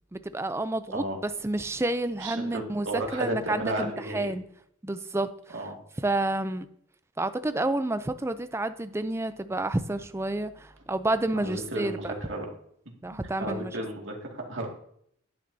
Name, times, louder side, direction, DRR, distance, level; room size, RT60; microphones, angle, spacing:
voice 1, 0.1-4.4 4.8-5.6 6.0-6.7 7.2-12.2 13.0-13.8, right 2 dB, 15° right, 11 dB, 0.4 m, -30 dB
voice 2, 2.2-4.3 5.5-5.8 11.3-12.5 13.1-14.7, right 1 dB, 65° right, 0 dB, 2.1 m, -33 dB
10.0 x 9.6 x 2.7 m, 0.67 s
head